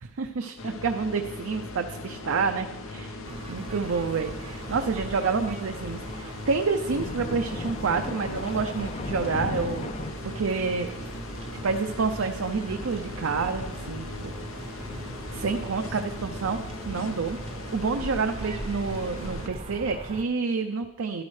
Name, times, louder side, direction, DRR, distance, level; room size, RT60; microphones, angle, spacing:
voice 1, 0.0-3.2 3.5-9.9 10.2-10.9 11.6-14.3 14.7-15.0 15.3-17.4 17.7-21.2, right 4 dB, 90° right, 6 dB, 0.5 m, -28 dB
sound 1, 0.6-19.5, left 2 dB, 90° left, 0.8 m, -39 dB
Thunder, 2.1-2.5 2.8-2.9 3.9-10.1, left 3 dB, 30° left, 0.3 m, -37 dB
sound 2, 3.2-20.2, right 2 dB, 30° right, 0.5 m, -40 dB
12.5 x 11.0 x 3.2 m, 1.1 s
head